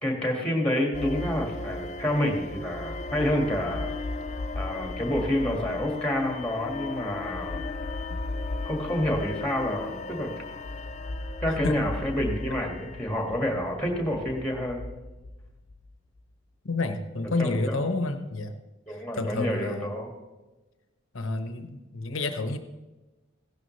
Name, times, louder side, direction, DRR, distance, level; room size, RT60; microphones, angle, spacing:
voice 1, 0.0-3.9 4.6-7.7 8.6-10.3 11.4-14.8 17.4-17.8 18.9-20.1, left 1 dB, 5° left, 1 dB, 1.8 m, -28 dB
sound 1, 0.9-16.2, left 2 dB, 35° left, 0.5 m, -36 dB
voice 2, 16.6-18.5 18.9-19.9 21.1-22.6, left 2 dB, 70° left, 8 dB, 1.0 m, -30 dB
15.5 x 12.0 x 3.2 m, 1.1 s
head